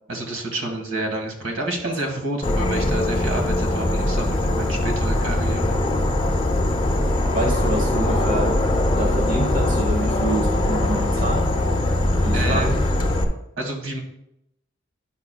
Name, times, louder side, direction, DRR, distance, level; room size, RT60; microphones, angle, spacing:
voice 1, 0.1-5.8 12.3-12.7 13.6-14.0, right 2 dB, 85° right, 1 dB, 1.7 m, -29 dB
voice 2, 1.8-2.2 7.3-8.6 9.0-11.5 12.2-12.8, right 1 dB, 40° right, 2 dB, 0.9 m, -27 dB
Insect / Frog, 2.4-13.2, left 1 dB, 25° left, 0.7 m, -21 dB
10.5 x 5.9 x 2.2 m, 0.82 s
head